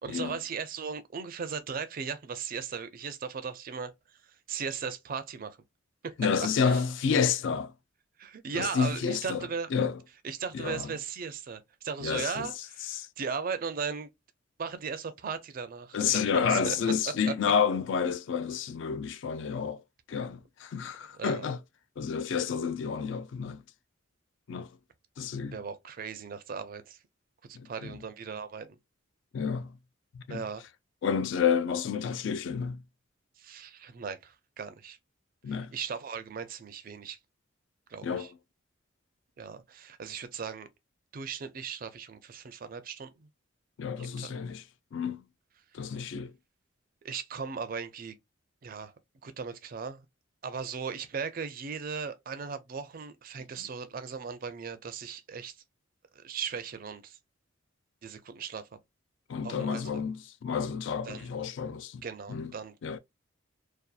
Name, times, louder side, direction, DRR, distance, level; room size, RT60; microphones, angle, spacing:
voice 1, 0.0-3.9 4.2-5.6 6.0-6.1 6.6-6.8 8.2-9.7 10.2-14.1 14.6-16.8 17.3-17.4 21.1-21.4 25.4-27.0 27.5-28.8 30.3-30.6 33.4-35.0 35.5-37.2 37.9-38.3 39.4-40.7 41.1-43.3 44.0-44.3 47.0-48.1 48.6-48.9 49.2-50.1 50.4-55.6 56.2-57.2 58.0-58.7 59.4-60.0 61.0-61.3 62.0-62.8, right 6 dB, 45° right, 0.4 m, -37 dB
voice 2, 6.2-7.7 8.5-9.4 9.7-10.0 10.5-10.9 12.0-12.5 12.9-13.1 15.9-19.8 20.1-21.6 22.0-23.6 24.5-24.7 25.2-25.6 27.5-28.0 29.3-29.7 30.1-30.4 31.0-32.8 35.4-35.7 38.0-38.3 43.8-44.6 44.9-45.2 45.7-46.3 59.3-62.0 62.3-62.5 62.8-63.0, left 6 dB, 65° left, 0.3 m, -30 dB
2.6 x 2.3 x 2.3 m
head